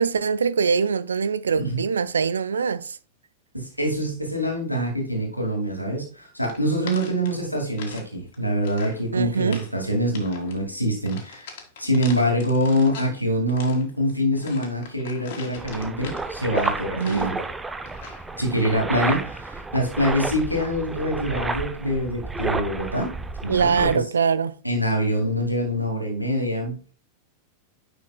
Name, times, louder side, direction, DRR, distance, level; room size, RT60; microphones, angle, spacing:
voice 1, 0.0-3.0 9.1-9.6 16.9-17.3 23.5-24.5, right 6 dB, 70° right, 0.4 m, -23 dB
voice 2, 3.5-11.5 11.8-17.3 18.4-23.1 23.4-24.0 24.6-26.8, equal, 90° left, 2.4 m, -25 dB
sound 1, 6.4-8.1 8.3-9.0 9.4-9.7 10.1-10.6 11.1-13.2 13.5-17.5 17.9-18.3, left 5 dB, 55° left, 1.9 m, -41 dB
sound 2, 15.6-24.0, right 3 dB, 10° right, 0.7 m, -31 dB
9.6 x 6.1 x 2.3 m
figure-of-eight pair, 90°, 0 cm